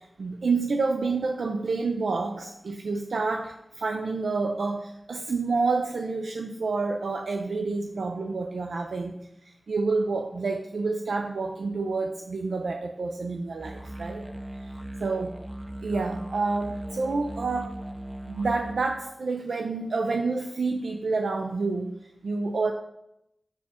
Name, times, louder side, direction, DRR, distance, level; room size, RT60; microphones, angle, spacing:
voice 1, 0.0-14.3 14.5-15.3 15.8-17.7 18.3-22.7, right 3 dB, 90° right, 4 dB, 0.3 m, -29 dB
sound 1, 13.6-18.7, right 1 dB, 5° right, 0.4 m, -38 dB
5.7 x 4.3 x 4.2 m, 0.83 s
wide cardioid pair, 70°, 0 cm